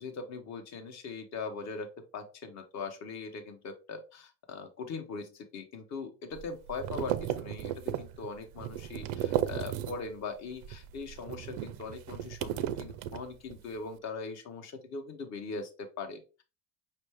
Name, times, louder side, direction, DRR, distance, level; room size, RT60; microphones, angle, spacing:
voice 1, 0.0-1.9 2.1-16.4, left 4 dB, 40° left, 6 dB, 0.9 m, -41 dB
sound 1, 6.3-10.2 10.5-13.7, right 12 dB, 55° right, 0.4 m, -35 dB
5.4 x 2.6 x 3.3 m, 0.32 s
cardioid pair, 145°, 40 cm